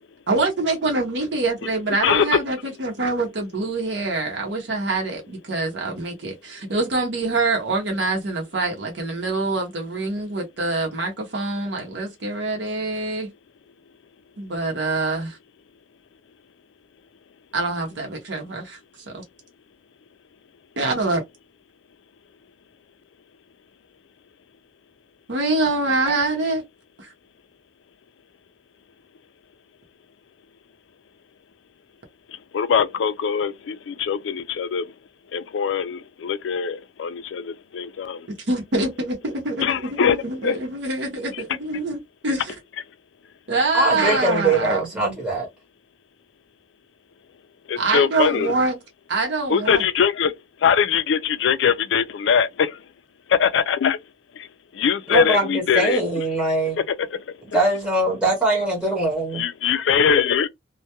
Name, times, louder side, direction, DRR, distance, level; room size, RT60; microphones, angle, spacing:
voice 1, 0.3-13.3 14.4-15.4 17.5-18.8 19.1-19.2 20.8-21.2 25.3-26.6 27.0-27.1 38.5-42.5 43.5-44.8 47.8-48.8 49.1-49.8, right 2 dB, 70° right, 0.7 m, -25 dB
voice 2, 2.0-2.4 32.5-34.9 35.3-38.2 39.6-40.2 40.4-40.6 41.3-41.4 44.1-44.4 47.7-48.5 49.5-50.3 50.6-52.8 53.3-54.0 54.8-56.0 56.9-57.0 59.3-60.5, left 7 dB, 80° left, 0.4 m, -22 dB
voice 3, 43.7-45.5 55.1-56.8 57.5-59.4, right 2 dB, 5° right, 0.8 m, -22 dB
2.2 x 2.1 x 2.8 m
head